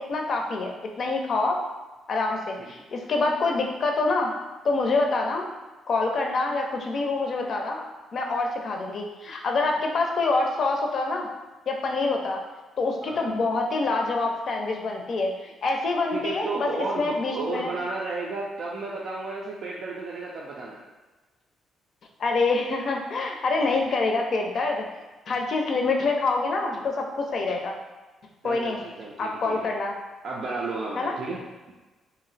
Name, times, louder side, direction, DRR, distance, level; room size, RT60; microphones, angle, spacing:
voice 1, 0.0-1.6 2.1-4.3 4.6-5.5 5.9-7.8 8.1-11.3 11.7-12.4 12.8-16.7 17.0-17.7 22.2-24.9 25.3-27.7 28.4-28.8 29.2-29.9 31.0-31.1, left 3 dB, 55° left, 2 dB, 0.5 m, -26 dB
voice 2, 13.0-13.3 16.1-20.8 28.4-29.7 30.2-31.4, right 3 dB, 65° right, -3 dB, 0.4 m, -33 dB
2.7 x 2.0 x 4.0 m, 1.2 s
cardioid pair, 90°, 0 cm